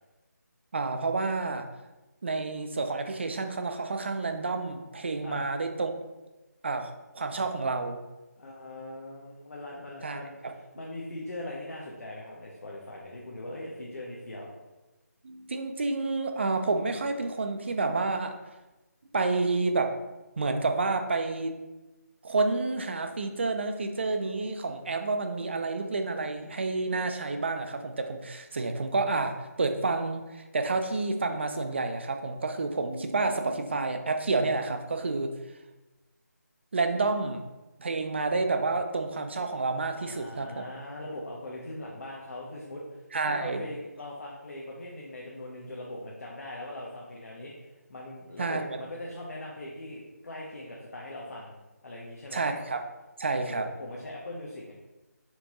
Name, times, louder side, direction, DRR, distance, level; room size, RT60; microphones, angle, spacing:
voice 1, 0.7-1.7 2.2-5.9 6.6-8.0 10.0-10.2 10.4-10.5 15.2-18.4 19.1-19.9 20.4-21.5 22.2-35.3 36.7-37.4 37.8-40.6 43.1-43.6 48.4-48.8 52.3-52.8 53.2-53.7, right 3 dB, 40° right, 7 dB, 0.3 m, -29 dB
voice 2, 8.4-14.5 40.0-51.6 51.8-52.5 53.3-54.7, left 1 dB, 60° left, -3 dB, 0.7 m, -41 dB
4.4 x 2.8 x 2.9 m, 1.1 s
figure-of-eight pair, 165°, 9 cm